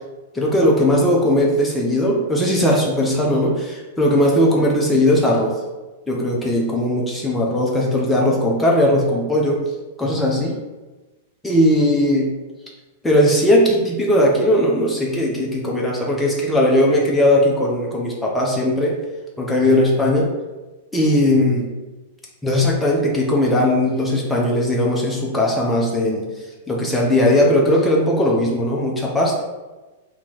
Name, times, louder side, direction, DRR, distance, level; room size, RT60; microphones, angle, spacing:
voice 1, 0.3-5.6 6.1-9.6 10.0-10.6 11.4-12.3 13.0-19.0 19.4-20.3 20.9-21.7 22.4-26.3 26.7-29.4, left 1 dB, 10° left, -3 dB, 0.7 m, -18 dB
2.9 x 2.8 x 3.9 m, 1.2 s
hypercardioid pair, 105°, 0 cm